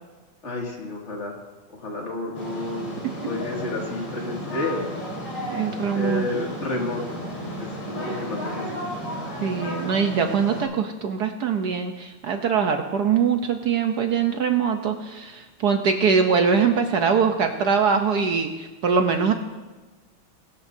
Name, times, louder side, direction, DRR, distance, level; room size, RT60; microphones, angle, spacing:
voice 1, 0.4-1.4 1.8-3.0 3.2-4.8 5.9-7.2 7.6-8.9, left 2 dB, 30° left, -2 dB, 2.5 m, -30 dB
sound 1, 2.3-10.6, equal, 90° left, 5.3 m, -33 dB
voice 2, 5.5-6.3 9.4-19.3, right 6 dB, 65° right, 5 dB, 1.1 m, -22 dB
21.0 x 12.5 x 2.7 m, 1.2 s
omnidirectional pair, 2.4 m